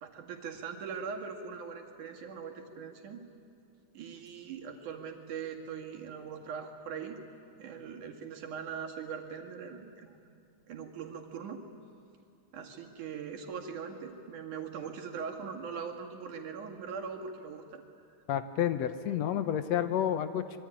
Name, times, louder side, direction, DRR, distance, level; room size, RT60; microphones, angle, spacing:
voice 1, 0.0-3.2 3.9-7.2 7.6-10.2 10.7-11.6 12.5-17.8, right 6 dB, 85° right, 3 dB, 3.7 m, -41 dB
voice 2, 18.3-20.6, left 10 dB, 70° left, 11 dB, 2.0 m, -30 dB
25.5 x 23.0 x 9.9 m, 2.5 s
omnidirectional pair, 3.4 m